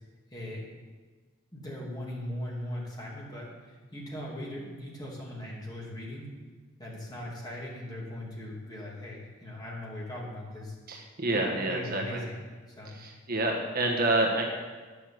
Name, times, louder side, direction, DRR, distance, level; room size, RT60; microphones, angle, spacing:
voice 1, 0.3-0.7 1.5-6.3 6.8-10.7 11.3-12.4 12.8-13.0, left 1 dB, 20° left, -4 dB, 2.7 m, -39 dB
voice 2, 10.9-12.2 12.8-14.4, right 2 dB, 45° right, 1 dB, 1.3 m, -28 dB
9.9 x 7.0 x 7.8 m, 1.4 s
head